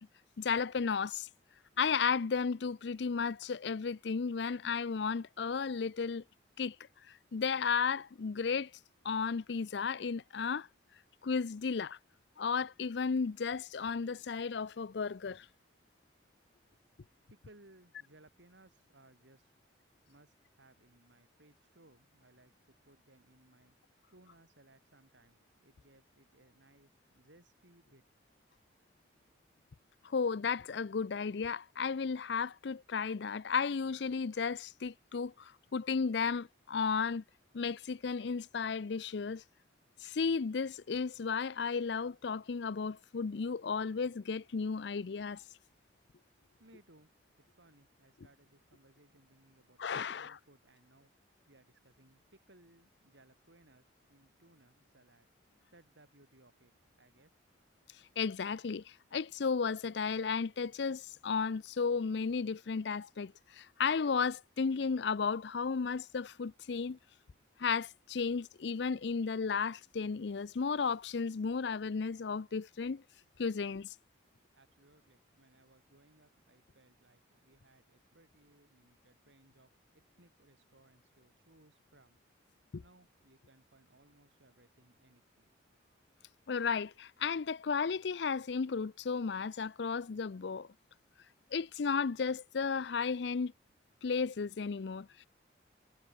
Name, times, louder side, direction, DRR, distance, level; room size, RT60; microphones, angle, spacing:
voice 1, 0.4-1.3 1.8-6.2 6.6-6.8 7.1-8.7 9.0-10.7 11.2-12.0 12.4-15.5 30.0-37.2 37.5-39.4 40.0-45.4 49.8-50.4 58.2-67.0 67.6-73.0 73.4-73.9 82.7-82.8 86.5-90.7 91.5-93.5 94.0-95.3, left 5 dB, 70° left, 0.5 m, -34 dB
voice 2, 17.3-19.6 20.0-23.8 24.1-28.0 46.3-47.1 47.4-51.1 51.5-55.3 55.7-57.3 74.5-82.2 82.8-85.5, right 1 dB, 75° right, 4.0 m, -64 dB
head